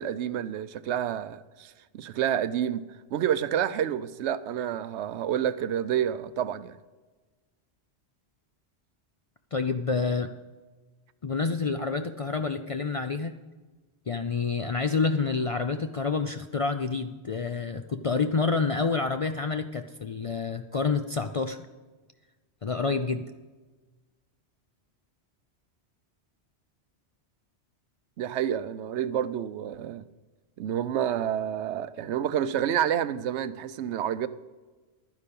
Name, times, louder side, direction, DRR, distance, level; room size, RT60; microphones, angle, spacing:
voice 1, 0.0-6.8 28.2-30.1 30.6-34.3, right 10 dB, 85° right, 0.9 m, -29 dB
voice 2, 9.5-10.3 11.2-13.3 14.1-21.6 22.6-23.2, left 4 dB, 50° left, 0.4 m, -28 dB
11.5 x 9.8 x 5.3 m
omnidirectional pair, 1.1 m